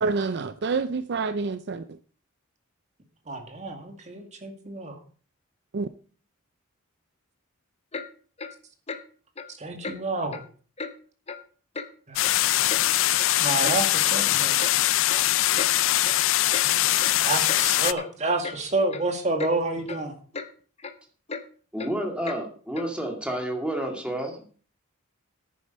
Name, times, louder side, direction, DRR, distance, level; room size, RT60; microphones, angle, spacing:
voice 1, 0.0-1.9 5.7-5.9, right 4 dB, 50° right, 12 dB, 0.5 m, -27 dB
voice 2, 3.3-5.0 9.6-10.4 12.1-12.2 13.4-14.6 16.8-20.1, right 2 dB, 35° right, 4 dB, 2.1 m, -29 dB
Clock, 7.9-8.1 8.4-8.5 8.9-9.0 9.4-9.5 9.8-10.0 10.3-10.5 10.8-10.9 11.3-11.4 11.8-11.9 12.2-12.8 13.2-13.3 13.6-13.8 14.1-14.3 14.6-14.8 15.1-15.2 15.6-15.7 16.0-16.2 16.5-16.7 17.0-17.1 17.5-17.6 18.0-18.1 18.4-18.6 18.9-19.1 19.4-19.5 19.9-20.0 20.3-20.5 20.8-20.9 21.3-21.4 21.8-21.9 22.2-22.4 22.8-22.9, left 4 dB, 30° left, 0.9 m, -35 dB
sound 1, 12.2-17.9, left 15 dB, 60° left, 0.4 m, -22 dB
voice 3, 21.7-24.4, right 1 dB, 5° right, 2 dB, 2.2 m, -30 dB
10.5 x 9.6 x 5.2 m, 0.41 s
head